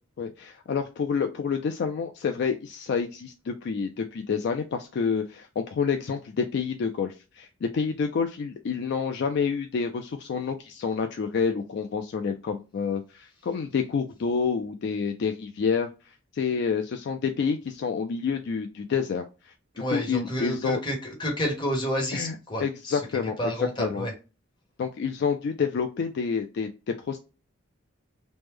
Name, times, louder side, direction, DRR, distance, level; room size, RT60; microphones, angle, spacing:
voice 1, 0.2-19.5 19.9-20.8 22.1-22.3 22.6-23.4 23.8-24.0 24.8-27.2, left 5 dB, 55° left, 6 dB, 0.3 m, -28 dB
voice 2, 19.7-24.1, equal, 20° left, 0 dB, 1.0 m, -30 dB
3.1 x 2.0 x 3.4 m, 0.30 s
head